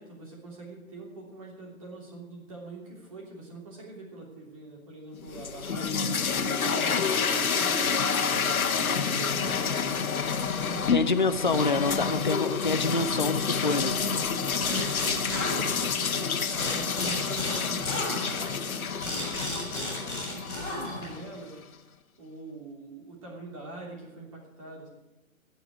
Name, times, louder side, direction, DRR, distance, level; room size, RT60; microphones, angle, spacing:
voice 1, 0.0-7.8 8.6-9.7 10.5-12.7 14.1-21.6 22.2-24.9, right 2 dB, 25° right, -2 dB, 3.1 m, -44 dB
sound 1, 5.2-21.3, left 6 dB, 80° left, 1.4 m, -28 dB
voice 2, 10.9-14.0, left 3 dB, 35° left, 8 dB, 0.5 m, -27 dB
sound 2, 14.6-16.2 16.6-21.3, left 1 dB, 5° left, 4.7 m, -34 dB
17.5 x 7.2 x 8.4 m, 1.0 s
hypercardioid pair, 180°, 42 cm